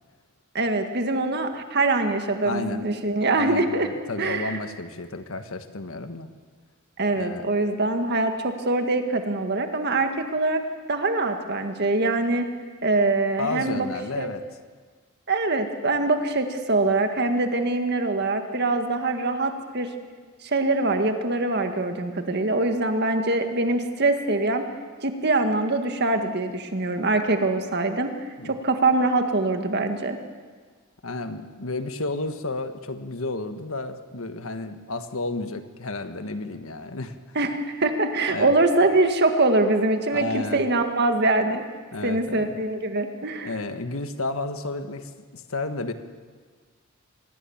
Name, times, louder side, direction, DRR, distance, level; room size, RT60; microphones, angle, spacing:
voice 1, 0.5-3.9 4.2-4.6 7.0-10.6 10.9-12.5 12.8-13.9 14.2-14.3 15.3-19.9 20.4-24.6 25.0-28.1 28.4-30.2 37.4-41.6 42.0-43.5, right 2 dB, 50° right, 6 dB, 1.9 m, -23 dB
voice 2, 2.4-2.9 3.4-6.3 7.2-7.5 13.4-14.4 28.4-28.6 31.0-37.2 38.3-38.5 40.1-40.6 41.9-42.5 43.4-45.9, left 2 dB, 75° left, 9 dB, 1.5 m, -32 dB
25.0 x 20.0 x 7.3 m, 1.5 s
head